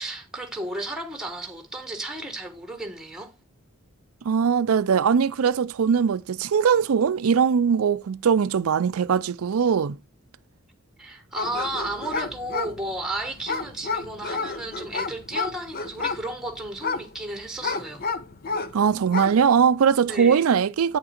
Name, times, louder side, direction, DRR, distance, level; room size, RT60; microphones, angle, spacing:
voice 1, 0.0-3.3 11.0-18.0 20.1-20.5, right 1 dB, ahead, 1.4 m, -33 dB
voice 2, 4.3-10.0 18.7-21.0, right 7 dB, 80° right, 0.4 m, -21 dB
sound 1, 11.4-18.8 19.0-19.5, left 4 dB, 45° left, 0.8 m, -31 dB
8.8 x 6.3 x 4.3 m
head